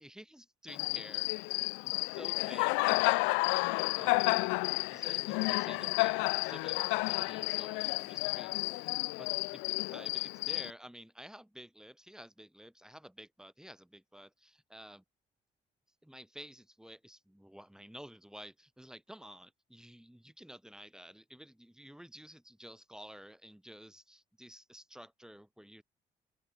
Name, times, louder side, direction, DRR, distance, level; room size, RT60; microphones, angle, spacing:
voice 1, 0.0-3.2 4.0-15.0 16.0-25.8, equal, 5° right, 7.5 m, -52 dB
Cricket, 0.7-10.7, left 31 dB, 65° left, 0.7 m, -31 dB
open air
figure-of-eight pair, 45°, 21 cm